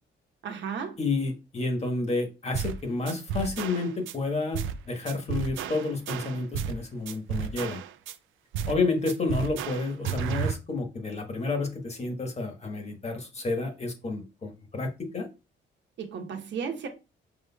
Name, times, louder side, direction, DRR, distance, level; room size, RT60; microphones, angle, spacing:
voice 1, 0.4-1.0 16.0-16.9, right 6 dB, 65° right, 1.0 m, -34 dB
voice 2, 1.0-4.6 4.8-7.8 8.7-15.3, left 3 dB, 35° left, 1.3 m, -30 dB
sound 1, 2.5-2.8 3.1-4.1 4.5-4.8 5.1-6.8 7.1-8.1 8.5-8.8 9.1-10.5, right 8 dB, 80° right, 0.4 m, -32 dB
5.9 x 3.1 x 2.3 m
cardioid pair, 90°, 20 cm